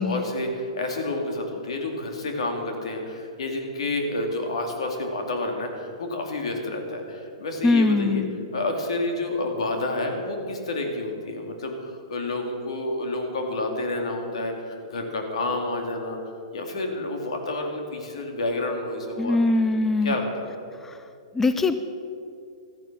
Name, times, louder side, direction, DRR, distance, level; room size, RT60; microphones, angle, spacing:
voice 1, 0.0-8.2 8.5-16.2 16.5-19.6 20.0-20.5, left 2 dB, 80° left, 3 dB, 2.4 m, -29 dB
voice 2, 7.6-8.4 19.2-20.1 20.8-21.0 21.3-21.9, left 3 dB, 10° left, 10 dB, 0.5 m, -22 dB
13.5 x 9.5 x 6.2 m, 2.4 s
hypercardioid pair, 135°, 3 cm